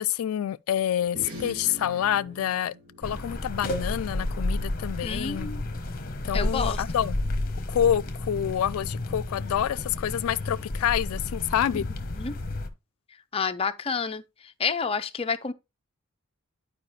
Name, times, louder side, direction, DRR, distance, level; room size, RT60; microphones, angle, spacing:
voice 1, 0.0-5.5 6.2-7.2 7.7-11.9, left 10 dB, 90° left, 0.3 m, -27 dB
sound 1, 1.0-5.8, equal, 80° right, 3.0 m, -45 dB
sound 2, 3.0-12.7, left 1 dB, 45° left, 1.1 m, -31 dB
voice 2, 5.0-5.6 6.3-6.8 12.1-12.3 13.3-14.2 14.6-15.5, left 5 dB, 25° left, 0.6 m, -29 dB
10.5 x 4.9 x 3.2 m
head